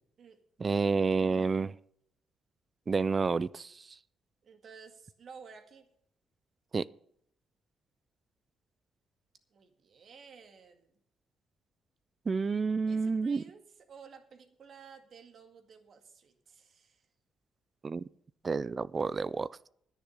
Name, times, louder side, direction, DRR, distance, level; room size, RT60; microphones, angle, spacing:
voice 1, 0.6-1.7 2.9-3.8 6.7-6.9 12.3-13.4 17.8-18.0 18.4-19.5, right 4 dB, 35° right, 20 dB, 0.4 m, -29 dB
voice 2, 4.4-5.9 9.5-11.0 12.9-13.6 13.9-17.1, right 6 dB, 55° right, 7 dB, 2.0 m, -53 dB
10.5 x 10.0 x 6.7 m, 0.69 s
cardioid pair, 90°, 0 cm